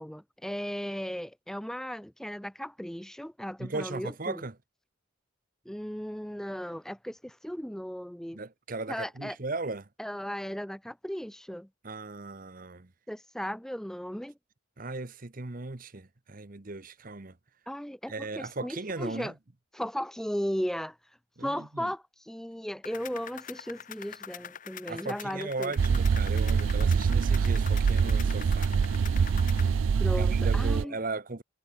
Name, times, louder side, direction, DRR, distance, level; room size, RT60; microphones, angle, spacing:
voice 1, 0.0-4.4 5.7-8.4 8.9-9.4 10.0-11.7 13.1-14.3 17.7-19.3 19.7-21.0 21.4-25.7 30.0-31.0, equal, ahead, 0.6 m, -36 dB
voice 2, 3.6-4.5 8.3-9.9 11.8-12.9 14.8-17.4 18.1-19.3 21.4-21.9 24.9-28.7 30.1-31.4, right 3 dB, 40° right, 1.0 m, -37 dB
sound 1, 22.8-29.7, left 8 dB, 40° left, 1.0 m, -45 dB
sound 2, 25.8-30.8, right 6 dB, 70° right, 0.4 m, -25 dB
head